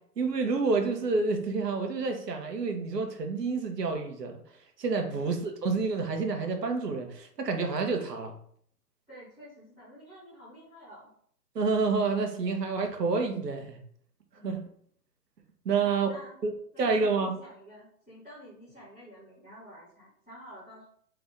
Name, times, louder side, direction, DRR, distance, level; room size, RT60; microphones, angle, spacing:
voice 1, 0.2-4.4 4.8-8.3 11.5-13.8 14.4-14.7 15.6-16.1 16.4-16.5 16.8-17.4, right 4 dB, 85° right, 4 dB, 1.2 m, -28 dB
voice 2, 9.1-11.1 14.3-14.7 15.8-16.4 16.7-20.8, equal, ahead, -22 dB, 0.5 m, -50 dB
3.9 x 3.5 x 3.5 m, 0.62 s
hypercardioid pair, 155°, 47 cm